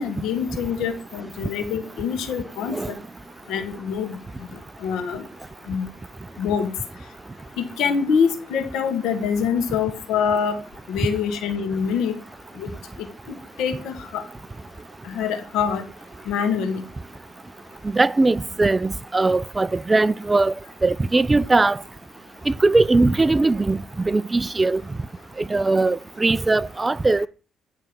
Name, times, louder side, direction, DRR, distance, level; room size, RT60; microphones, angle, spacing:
voice 1, 0.0-3.0 3.5-5.2 5.7-5.9 6.4-6.7 7.6-10.6 10.9-12.1 12.5-12.7 13.3-14.2 15.0-15.8 16.2-16.8, left 6 dB, 85° left, 1.4 m, -25 dB
voice 2, 17.9-20.5 20.8-21.8 22.5-23.8 24.0-24.8 25.4-27.3, right 3 dB, 20° right, 0.3 m, -20 dB
9.2 x 3.3 x 6.8 m
cardioid pair, 90°, 0 cm